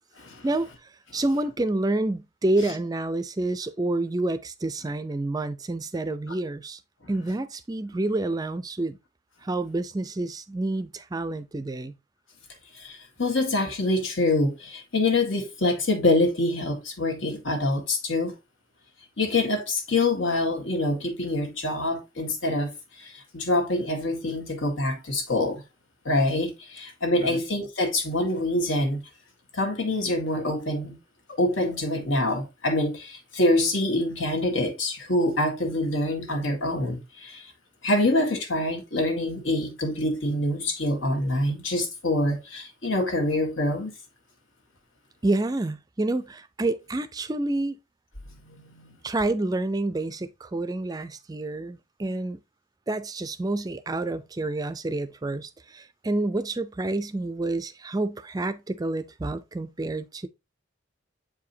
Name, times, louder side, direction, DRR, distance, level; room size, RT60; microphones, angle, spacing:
voice 1, 0.4-6.8 7.1-9.0 9.4-11.9 27.2-27.4 45.2-47.8 49.0-52.4 52.9-60.3, right 2 dB, 20° right, 0.4 m, -28 dB
voice 2, 12.7-18.3 19.2-22.7 23.0-25.6 26.1-29.0 29.5-31.0 31.4-37.5 37.8-43.9 48.3-49.0, left 2 dB, 80° left, 1.7 m, -25 dB
7.4 x 4.8 x 2.7 m
head